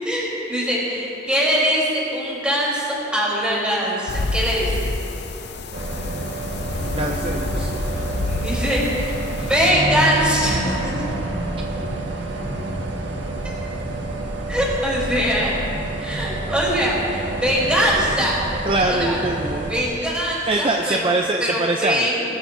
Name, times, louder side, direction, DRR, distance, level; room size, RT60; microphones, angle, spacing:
voice 1, 0.0-4.9 8.3-10.9 14.5-15.5 16.0-18.4 18.8-19.2 19.7-21.1 21.4-22.2, equal, 5° right, -6 dB, 3.8 m, -22 dB
sound 1, 4.1-9.7, left 2 dB, 55° left, 0.6 m, -28 dB
sound 2, 5.7-19.8, right 2 dB, 65° right, 1.6 m, -28 dB
voice 2, 6.9-7.7 18.6-19.7 20.5-22.1, right 2 dB, 25° right, 2 dB, 0.5 m, -23 dB
21.0 x 14.5 x 2.7 m, 2.9 s
head